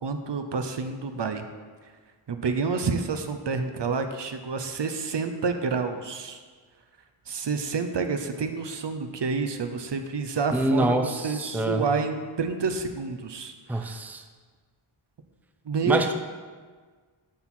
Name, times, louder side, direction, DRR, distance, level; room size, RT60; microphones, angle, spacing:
voice 1, 0.0-1.4 2.3-6.4 7.3-14.0 15.7-16.1, right 4 dB, 55° right, 7 dB, 0.7 m, -29 dB
voice 2, 10.5-11.8 13.7-14.2 15.8-16.1, right 1 dB, 5° right, 5 dB, 0.6 m, -25 dB
11.0 x 4.3 x 4.3 m, 1.5 s
wide cardioid pair, 65°, 49 cm